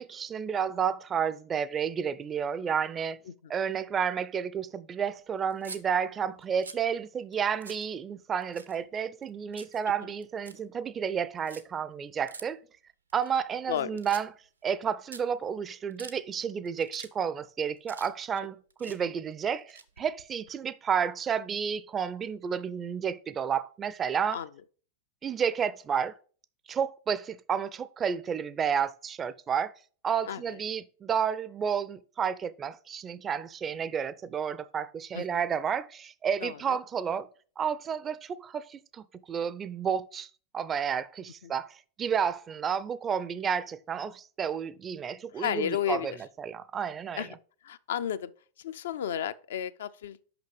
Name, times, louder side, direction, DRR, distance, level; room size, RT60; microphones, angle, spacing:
voice 1, 0.0-3.2 3.5-12.6 13.1-14.3 14.6-24.4 25.2-26.1 26.7-29.7 30.0-37.3 37.6-46.1 46.4-47.3, right 7 dB, 25° right, 0.4 m, -31 dB
sound 1, 5.5-5.8 6.4-6.9 7.3-7.4 7.6-7.9 8.4-9.0 9.2-9.8 10.2-10.6 11.4-11.6 12.3-12.4 13.1-13.7 14.0-14.5 14.8-14.9 15.1-15.2 15.7-16.2 16.7-17.1 17.4-18.4 18.7-19.0 19.6-20.5, right 4 dB, 80° right, 0.7 m, -46 dB
voice 2, 13.7-14.0 19.0-19.1 24.3-24.5 30.3-30.6 35.1-35.4 36.4-36.8 41.4-41.5 45.4-46.1 47.2-47.4 47.6-48.3 48.6-50.2, left 9 dB, 60° left, 0.4 m, -33 dB
5.9 x 5.7 x 4.9 m
figure-of-eight pair, 90°, 0 cm